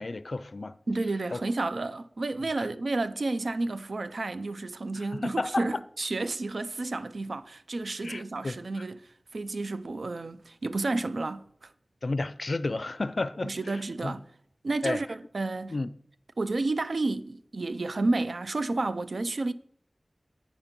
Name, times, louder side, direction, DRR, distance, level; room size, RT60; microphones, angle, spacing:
voice 1, 0.0-0.8 1.3-1.4 2.6-2.7 5.0-5.7 8.0-8.5 12.0-14.1 14.8-15.0 15.7-15.9, left 2 dB, 65° left, 0.4 m, -32 dB
voice 2, 0.9-11.7 13.4-14.3 14.6-15.8 16.4-19.5, right 2 dB, 80° right, 0.4 m, -31 dB
8.8 x 5.2 x 5.9 m
wide cardioid pair, 50°, 0 cm